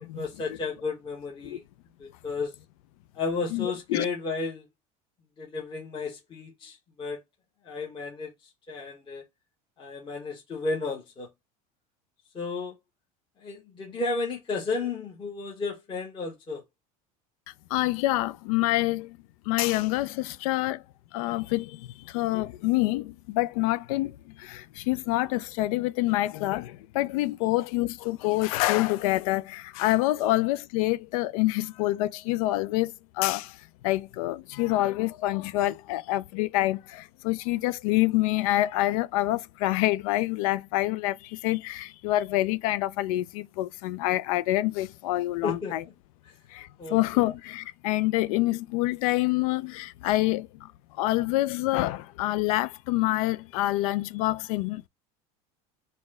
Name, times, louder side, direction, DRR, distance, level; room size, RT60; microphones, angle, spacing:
voice 1, 0.1-1.6 2.0-2.5 3.1-4.7 5.4-7.2 7.6-8.3 8.7-9.2 9.8-11.3 12.3-12.7 13.4-16.6 27.4-27.5 30.2-30.3 45.4-45.7 46.8-47.0, left 3 dB, 25° left, 1.1 m, -33 dB
voice 2, 3.5-4.1 17.7-19.2 19.5-20.8 21.1-33.6 33.8-45.8 46.5-50.7 51.0-54.9, left 17 dB, 80° left, 0.4 m, -27 dB
4.1 x 2.2 x 3.6 m
supercardioid pair, 130°, 18 cm